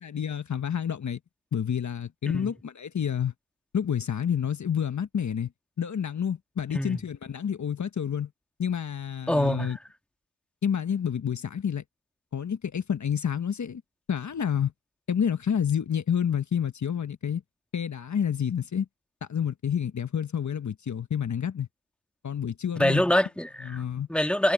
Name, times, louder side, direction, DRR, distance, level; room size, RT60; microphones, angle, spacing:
voice 1, 0.0-1.2 1.5-3.3 3.7-5.5 5.8-8.3 8.6-9.8 10.6-11.8 12.3-13.8 14.1-14.7 15.1-17.4 17.7-18.9 19.3-21.7 22.2-23.0 23.6-24.1, left 8 dB, 60° left, 1.3 m, -29 dB
voice 2, 9.3-9.8 22.8-23.8 24.1-24.5, left 1 dB, 5° left, 1.9 m, -25 dB
supercardioid pair, 40°, 33 cm